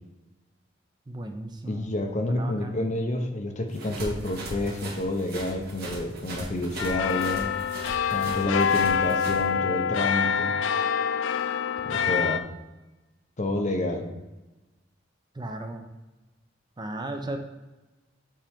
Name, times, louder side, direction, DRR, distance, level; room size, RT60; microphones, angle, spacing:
voice 1, 1.1-1.9 2.3-2.8 15.3-15.9 16.8-17.4, right 1 dB, 25° right, 5 dB, 0.5 m, -36 dB
voice 2, 1.7-7.5 8.1-10.5 11.8-12.5 13.4-14.1, left 2 dB, 40° left, 4 dB, 0.7 m, -29 dB
sound 1, 3.7-9.4, right 2 dB, 55° right, 1.4 m, -39 dB
sound 2, 6.8-12.4, left 7 dB, 70° left, 0.4 m, -26 dB
7.4 x 4.3 x 3.5 m, 1.1 s
head